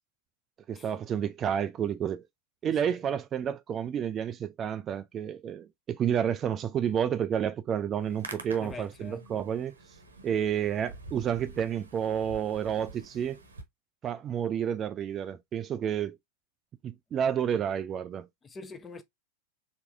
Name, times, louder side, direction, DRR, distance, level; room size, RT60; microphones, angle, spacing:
voice 1, 0.7-2.2 2.6-9.7 10.2-13.4 14.0-16.2 16.8-18.3, right 8 dB, 25° right, 0.3 m, -30 dB
Hands, 7.9-13.6, right 3 dB, 75° right, 1.0 m, -47 dB
voice 2, 8.6-9.3 18.4-19.0, left 4 dB, 20° left, 0.7 m, -44 dB
4.6 x 3.4 x 2.4 m
figure-of-eight pair, 90°, 0 cm